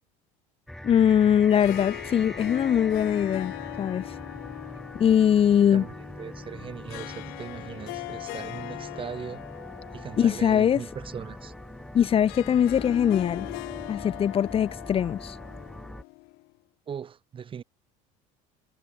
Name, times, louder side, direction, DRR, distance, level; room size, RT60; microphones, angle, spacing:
sound 1, 0.7-16.0, equal, ahead, 4.9 m, -42 dB
voice 1, 0.8-4.2 4.9-5.9 10.2-10.8 11.9-13.5 13.9-15.4, left 9 dB, 35° left, 1.8 m, -22 dB
Harp, 1.2-16.5, left 25 dB, 70° left, 3.4 m, -40 dB
voice 2, 5.7-9.4 9.9-11.5 16.9-17.6, right 7 dB, 30° right, 5.1 m, -39 dB
supercardioid pair, 120°, 17 cm